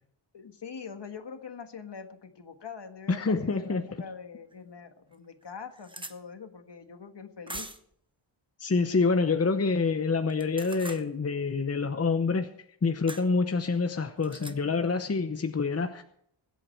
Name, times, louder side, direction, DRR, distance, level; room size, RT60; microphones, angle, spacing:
voice 1, 0.3-7.7, left 6 dB, 55° left, 7 dB, 1.6 m, -43 dB
voice 2, 3.1-3.9 8.6-12.5 12.8-16.0, left 4 dB, 30° left, 7 dB, 0.9 m, -27 dB
sound 1, 4.5-4.6 5.1-5.2 5.4-6.2 7.5-7.9 10.3-11.1 13.1-13.3 14.2-14.6, right 2 dB, 10° right, 0.9 m, -41 dB
22.0 x 8.4 x 4.5 m, 0.67 s
wide cardioid pair, 110°, 50 cm